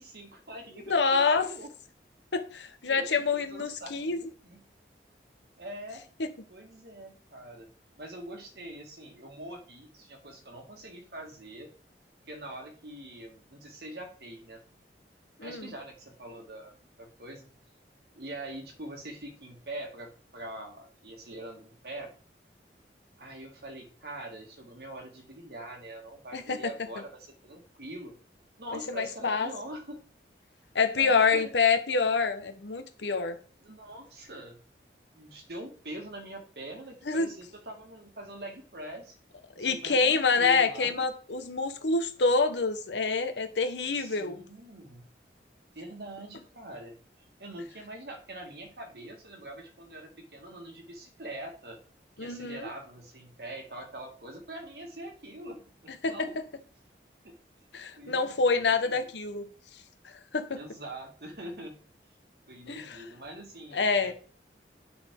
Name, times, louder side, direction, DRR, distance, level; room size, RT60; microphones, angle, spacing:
voice 1, 0.0-1.7 2.9-4.6 5.6-6.0 6.5-7.7 8.0-11.7 12.3-14.6 15.4-17.4 18.1-22.1 23.2-28.1 28.6-30.0 31.0-31.5 33.6-34.6 35.1-39.2 39.6-40.9 44.0-45.1 45.8-47.0 47.4-51.8 52.2-56.4 57.2-57.4 58.0-58.4 58.8-59.0 60.5-61.8 62.5-64.1, right 1 dB, 65° right, 1.7 m, -43 dB
voice 2, 0.9-1.5 2.3-4.2 15.4-15.7 26.3-26.6 28.9-29.5 30.7-33.4 37.1-37.3 39.6-44.4 52.2-52.7 56.0-56.1 57.7-59.4 60.3-60.6 62.7-63.0 63.7-64.1, left 4 dB, 90° left, 0.9 m, -26 dB
8.5 x 4.0 x 3.7 m
head